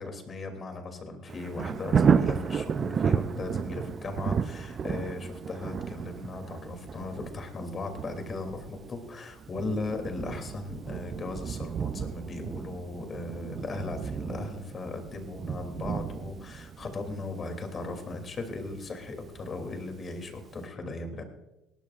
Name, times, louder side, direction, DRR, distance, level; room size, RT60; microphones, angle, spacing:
voice 1, 0.0-21.2, left 3 dB, 30° left, 5 dB, 2.8 m, -37 dB
Thunder, 1.3-20.1 20.5-20.6, right 6 dB, 30° right, 0.5 m, -32 dB
20.0 x 17.5 x 2.5 m, 1.0 s
cardioid pair, 125°, 0 cm